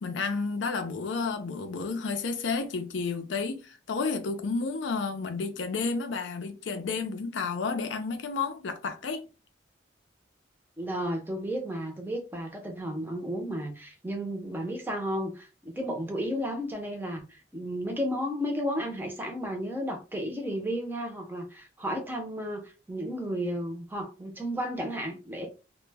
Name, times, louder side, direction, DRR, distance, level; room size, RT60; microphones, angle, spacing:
voice 1, 0.0-9.3, left 4 dB, 75° left, 0.4 m, -31 dB
voice 2, 10.8-25.5, equal, 10° right, 0.5 m, -33 dB
2.1 x 2.1 x 3.2 m
head